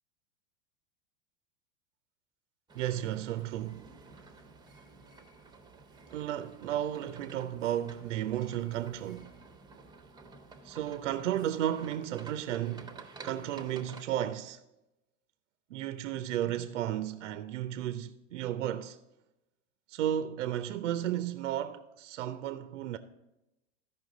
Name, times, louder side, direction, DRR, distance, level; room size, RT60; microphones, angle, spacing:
sound 1, 2.7-14.0, right 4 dB, 10° right, 0.8 m, -52 dB
voice 1, 2.7-3.9 6.1-9.3 10.6-13.0 13.2-14.6 15.7-19.0 19.9-23.0, right 11 dB, 80° right, 0.6 m, -33 dB
13.5 x 5.6 x 3.8 m
hypercardioid pair, 105°, 37 cm